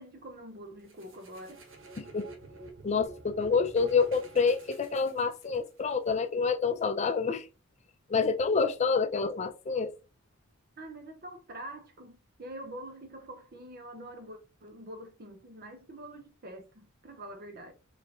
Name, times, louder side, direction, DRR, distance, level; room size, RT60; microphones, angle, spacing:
voice 1, 0.0-1.6 10.8-17.7, right 1 dB, 45° right, 0.8 m, -45 dB
sound 1, 0.9-5.8, right 2 dB, 65° right, 1.1 m, -48 dB
voice 2, 2.8-7.5 8.1-9.9, left 5 dB, 35° left, 0.4 m, -27 dB
4.5 x 3.3 x 2.9 m
head